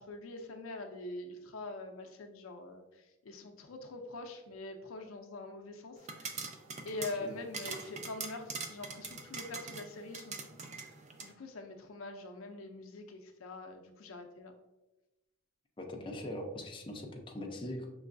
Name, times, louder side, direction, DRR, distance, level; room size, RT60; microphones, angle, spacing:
voice 1, 0.0-6.4 6.8-10.5 11.2-14.5, left 2 dB, 75° left, 4 dB, 0.5 m, -44 dB
sound 1, 6.0-11.3, right 4 dB, 35° right, 0.4 m, -43 dB
voice 2, 15.8-17.9, left 1 dB, 25° left, 1 dB, 0.5 m, -41 dB
5.3 x 3.1 x 2.5 m, 1.0 s
head